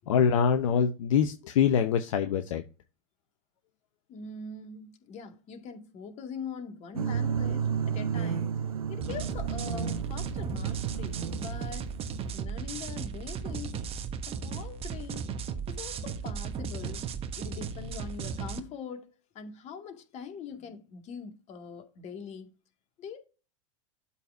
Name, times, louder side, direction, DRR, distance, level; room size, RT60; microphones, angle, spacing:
voice 1, 0.1-2.6, left 7 dB, 65° left, 0.8 m, -24 dB
voice 2, 4.1-8.5 8.9-11.9 12.3-13.8 14.3-15.3 15.7-17.0 17.4-22.5 23.0-23.2, left 6 dB, 40° left, 2.1 m, -42 dB
sound 1, 7.0-12.3, right 7 dB, 90° right, 0.7 m, -32 dB
sound 2, 9.0-18.6, right 6 dB, 35° right, 1.1 m, -36 dB
12.5 x 4.2 x 2.6 m
hypercardioid pair, 90°, 18 cm